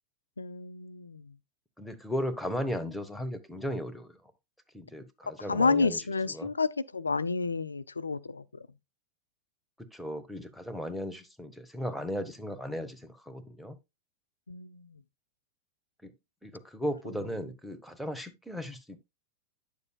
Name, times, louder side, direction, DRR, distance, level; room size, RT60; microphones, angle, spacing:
voice 1, 0.4-1.3 5.5-8.6 14.5-14.9, left 4 dB, 85° left, 0.3 m, -30 dB
voice 2, 1.8-4.3 4.7-6.0 6.3-6.5 9.8-13.8 16.0-16.1 16.4-19.0, equal, ahead, 1.2 m, -36 dB
9.6 x 6.9 x 2.3 m
figure-of-eight pair, 90°, 0 cm